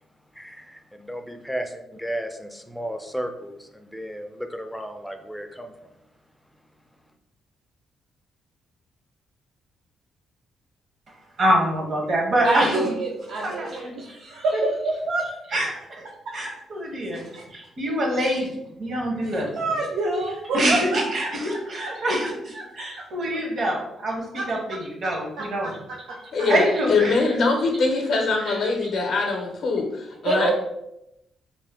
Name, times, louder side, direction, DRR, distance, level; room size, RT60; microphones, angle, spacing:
voice 1, 0.3-5.9, equal, ahead, 5 dB, 0.3 m, -34 dB
voice 2, 11.4-12.9 13.4-14.6 15.5-16.1 16.3-19.5 20.5-25.7 26.5-27.3 28.5-28.6, right 1 dB, 50° right, 0 dB, 0.8 m, -25 dB
voice 3, 12.4-15.2 17.1-17.4 19.2-22.3 22.5-22.6 24.4-24.5 25.4-25.5 26.1-26.2 30.2-30.5, right 2 dB, 80° right, -2 dB, 0.4 m, -27 dB
voice 4, 26.3-30.5, left 3 dB, 65° left, 1 dB, 0.5 m, -23 dB
2.5 x 2.1 x 3.3 m, 0.85 s
cardioid pair, 100°, 0 cm